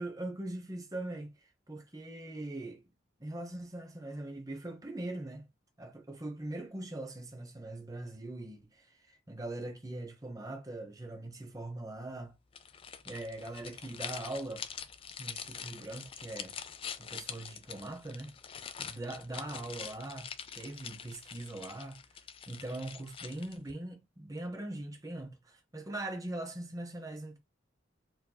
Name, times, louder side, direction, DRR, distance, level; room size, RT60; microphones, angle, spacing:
voice 1, 0.0-1.3 1.7-2.8 3.2-5.4 5.8-12.3 13.0-14.6 15.2-16.5 17.0-18.3 18.8-22.0 22.5-27.4, right 1 dB, 20° right, 0.9 m, -41 dB
sound 1, 12.5-23.7, left 7 dB, 30° left, 0.4 m, -45 dB
4.3 x 2.8 x 2.2 m
head